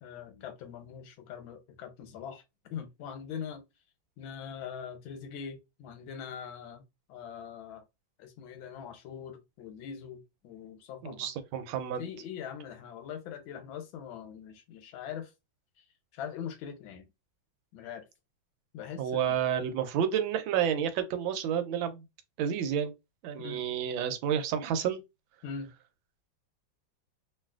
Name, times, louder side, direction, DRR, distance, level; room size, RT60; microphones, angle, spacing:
voice 1, 0.0-2.4 2.7-3.6 4.2-6.8 7.1-7.8 8.2-11.3 12.0-15.3 16.1-17.1 17.7-18.1 18.7-19.4 23.4-23.6 25.4-25.7, left 7 dB, 85° left, 1.5 m, -42 dB
voice 2, 11.0-12.1 19.0-22.0 22.4-22.9 23.2-25.0, right 9 dB, 80° right, 1.3 m, -30 dB
3.1 x 2.6 x 2.3 m
omnidirectional pair, 2.2 m